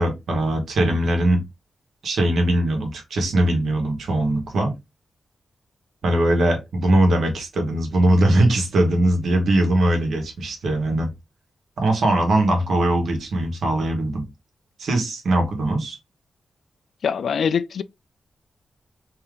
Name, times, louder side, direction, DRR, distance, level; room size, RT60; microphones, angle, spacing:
voice 1, 0.0-1.4 2.0-4.7 6.0-11.1 11.8-14.2 14.8-16.0, right 1 dB, 85° right, 1.2 m, -20 dB
voice 2, 17.0-17.8, left 7 dB, 75° left, 0.3 m, -23 dB
3.7 x 2.8 x 3.3 m
wide cardioid pair, 135°, 0 cm